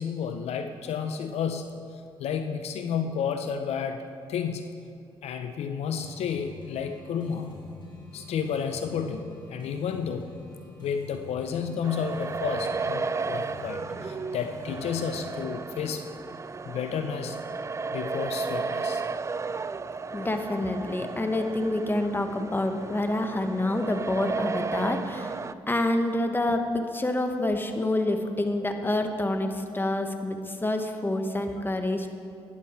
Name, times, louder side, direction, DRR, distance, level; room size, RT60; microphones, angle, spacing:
voice 1, 0.0-1.8 2.2-4.0 4.3-4.8 5.2-7.6 8.1-10.3 10.8-16.0 16.6-17.4 17.9-19.0, left 7 dB, 70° left, 7 dB, 0.6 m, -31 dB
sound 1, 6.0-15.6, left 3 dB, 45° left, 3.0 m, -45 dB
sound 2, 11.8-25.5, right 4 dB, 25° right, 0.4 m, -34 dB
voice 2, 20.1-25.4 25.7-32.1, left 1 dB, 20° left, 6 dB, 1.3 m, -27 dB
13.5 x 9.9 x 4.4 m, 2.4 s
supercardioid pair, 60°, 11 cm